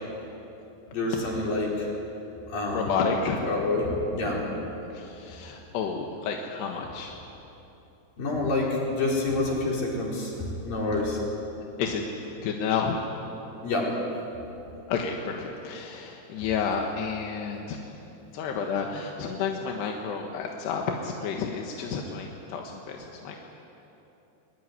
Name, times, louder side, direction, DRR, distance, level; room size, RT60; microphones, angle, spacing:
voice 1, 0.9-1.9 2.5-3.0 3.4-4.4 8.2-10.3 10.6-11.2 13.6-13.9, left 2 dB, 60° left, -3 dB, 6.4 m, -27 dB
voice 2, 2.7-3.5 4.9-7.2 11.8-12.1 12.4-13.0 14.9-18.0 18.3-23.4, left 6 dB, 90° left, 1 dB, 3.7 m, -30 dB
23.0 x 22.5 x 9.7 m, 3.0 s
omnidirectional pair, 4.7 m